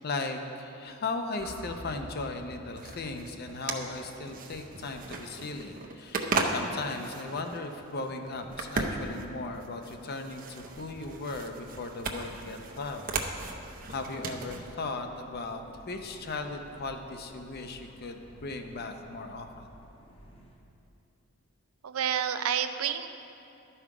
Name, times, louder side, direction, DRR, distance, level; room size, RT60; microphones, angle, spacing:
voice 1, 0.0-13.1 13.9-19.7, left 3 dB, 50° left, 5 dB, 0.6 m, -37 dB
sound 1, 1.4-5.6, equal, 65° right, 1.0 m, -49 dB
sound 2, 2.7-14.7, right 3 dB, 40° right, 0.6 m, -36 dB
sound 3, 10.6-20.6, equal, 25° left, 1.0 m, -54 dB
voice 2, 21.8-23.1, right 8 dB, 85° right, 10 dB, 0.5 m, -29 dB
12.0 x 5.6 x 4.7 m, 2.8 s
head